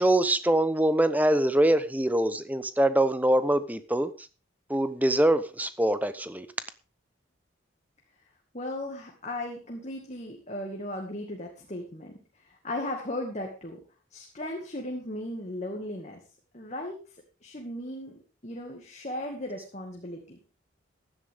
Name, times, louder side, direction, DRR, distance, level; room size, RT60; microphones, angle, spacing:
voice 1, 0.0-4.1 4.7-6.5, right 1 dB, 10° right, 12 dB, 0.9 m, -24 dB
voice 2, 8.5-12.1 12.4-13.8 14.1-16.2 16.5-17.0 17.4-20.4, left 1 dB, 35° left, 1 dB, 2.1 m, -36 dB
15.5 x 11.5 x 3.7 m, 0.33 s
head